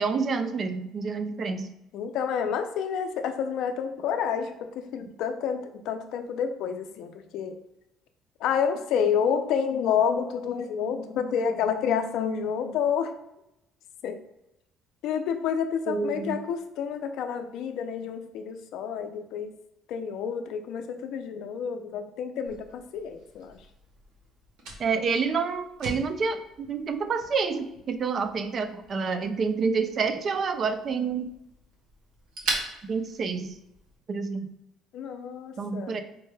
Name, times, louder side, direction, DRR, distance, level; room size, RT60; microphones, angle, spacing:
voice 1, 0.0-1.7 15.9-16.4 24.8-31.3 32.8-33.6 34.1-34.5 35.6-36.0, right 5 dB, 40° right, 9 dB, 0.3 m, -28 dB
voice 2, 1.9-7.6 8.4-13.1 14.0-14.2 15.0-19.5 19.9-23.6 34.9-36.0, left 7 dB, 70° left, 8 dB, 0.4 m, -29 dB
Fire, 22.4-34.0, right 2 dB, 75° right, 0.9 m, -41 dB
4.4 x 2.1 x 3.1 m, 0.85 s
cardioid pair, 120°, 0 cm